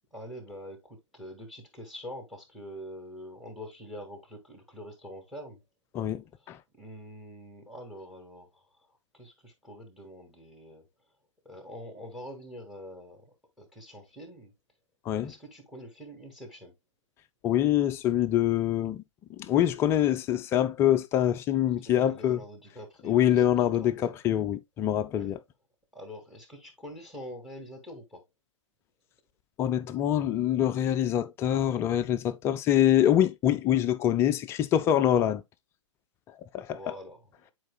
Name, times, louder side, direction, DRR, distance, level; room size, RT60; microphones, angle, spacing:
voice 1, 0.1-5.6 6.4-8.7 9.1-10.8 11.5-14.5 15.2-16.7 21.8-24.2 25.1-25.3 25.9-28.2 36.7-37.3, equal, ahead, 2.0 m, -45 dB
voice 2, 5.9-6.6 15.1-15.3 17.4-19.0 19.4-22.4 23.0-25.4 29.6-35.4 36.5-36.8, left 11 dB, 15° left, 0.3 m, -25 dB
10.0 x 4.5 x 2.3 m
figure-of-eight pair, 115°, 16 cm